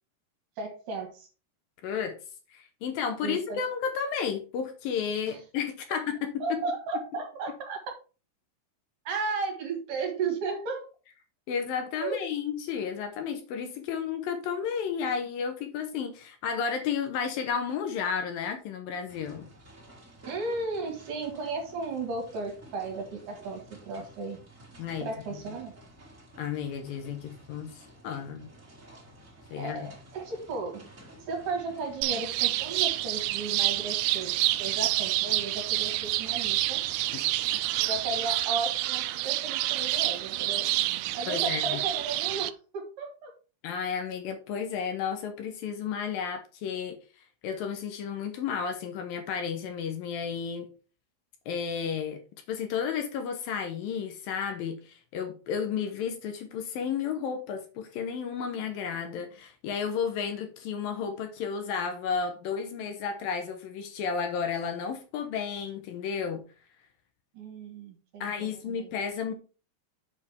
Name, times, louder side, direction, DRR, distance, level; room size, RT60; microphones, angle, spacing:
voice 1, 0.6-1.3 3.2-3.6 5.3-5.4 5.9-6.0 6.4-7.8 9.1-10.9 12.0-12.2 20.3-24.4 25.0-25.7 29.6-30.8 31.2-36.8 37.8-40.7 41.1-43.3 67.3-68.9, right 3 dB, 60° right, 3 dB, 3.0 m, -35 dB
voice 2, 1.8-2.2 2.5-6.6 11.5-19.5 24.8-25.4 26.4-28.5 29.5-29.9 37.1-37.2 41.3-41.8 43.6-47.0 47.4-50.7 51.5-52.2 52.5-66.4 68.2-69.3, left 6 dB, 75° left, 6 dB, 2.5 m, -32 dB
sound 1, 19.1-38.4, right 1 dB, 25° right, 2.0 m, -53 dB
sound 2, 32.0-42.5, right 16 dB, 85° right, 2.0 m, -28 dB
7.5 x 6.5 x 3.4 m, 0.34 s
omnidirectional pair, 4.5 m